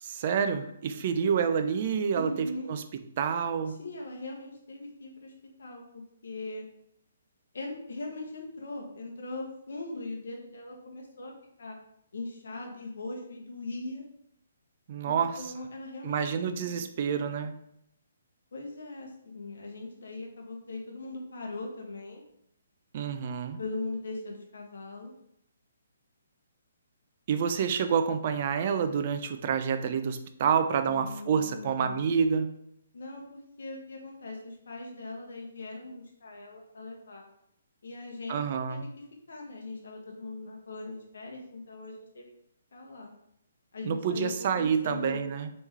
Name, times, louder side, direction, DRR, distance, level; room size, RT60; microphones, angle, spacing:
voice 1, 0.0-2.8 3.2-3.8 14.9-15.4 16.0-17.5 22.9-23.6 27.3-32.5 38.3-38.8 43.8-45.5, right 7 dB, 45° right, 9 dB, 0.4 m, -28 dB
voice 2, 2.1-2.7 3.7-5.3 5.6-6.7 7.5-11.3 11.6-11.8 12.1-14.0 15.0-16.9 17.1-17.4 18.5-22.2 23.6-25.1 30.9-32.1 32.9-37.2 37.8-42.3 42.7-43.1 43.7-45.3, left 2 dB, 75° left, 0 dB, 0.8 m, -40 dB
3.5 x 3.1 x 3.1 m, 0.76 s
hypercardioid pair, 145°, 0 cm